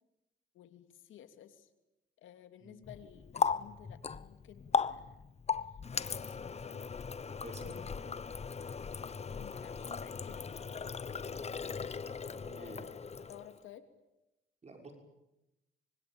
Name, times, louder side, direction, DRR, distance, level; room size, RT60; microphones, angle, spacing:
voice 1, 0.5-1.7 2.2-5.2 5.7-6.8 9.2-11.2 12.3-13.9, left 10 dB, 80° left, 8 dB, 2.8 m, -55 dB
Water tap faucet, 2.8-13.6, left 5 dB, 35° left, 1.1 m, -38 dB
voice 2, 7.4-8.1 11.3-11.5 12.4-12.8 14.6-14.9, right 2 dB, 35° right, 3 dB, 6.3 m, -50 dB
25.5 x 24.5 x 9.0 m, 0.92 s
cardioid pair, 90°, 20 cm